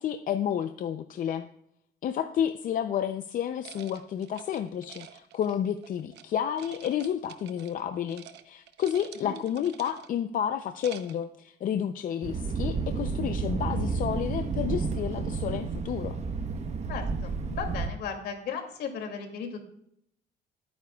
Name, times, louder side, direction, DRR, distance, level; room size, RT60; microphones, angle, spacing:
voice 1, 0.0-1.5 2.0-16.2, left 9 dB, 55° left, 9 dB, 0.6 m, -31 dB
sound 1, 3.6-6.2 6.6-7.8 8.1-8.4 8.7-10.2 10.6-11.3, right 11 dB, 85° right, 0.9 m, -48 dB
Thunder, 12.2-17.9, right 4 dB, 40° right, 1.1 m, -31 dB
voice 2, 16.9-19.6, left 6 dB, 75° left, 4 dB, 2.6 m, -36 dB
21.0 x 9.5 x 2.4 m, 0.71 s
cardioid pair, 130°, 17 cm